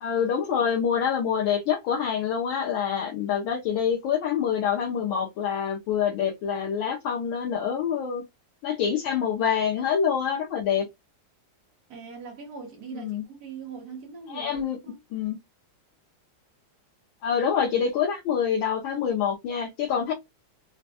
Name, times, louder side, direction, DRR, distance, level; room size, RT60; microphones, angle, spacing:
voice 1, 0.0-8.2 8.6-10.9 12.9-13.2 14.3-14.8 15.1-15.4 17.2-20.1, left 7 dB, 75° left, 1.3 m, -26 dB
voice 2, 11.9-15.0, right 5 dB, 55° right, 1.2 m, -41 dB
4.1 x 2.1 x 2.7 m
omnidirectional pair, 2.4 m